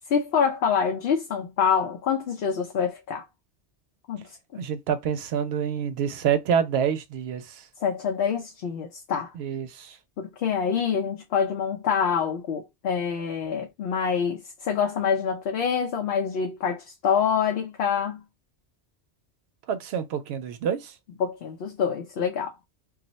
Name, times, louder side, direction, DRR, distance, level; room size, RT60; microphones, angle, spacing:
voice 1, 0.1-3.2 4.1-4.6 7.8-9.3 10.2-18.2 21.2-22.5, left 7 dB, 65° left, 0.8 m, -26 dB
voice 2, 4.6-7.4 9.4-9.9 19.7-20.9, right 8 dB, 70° right, 0.8 m, -27 dB
2.4 x 2.1 x 3.8 m
omnidirectional pair, 1.2 m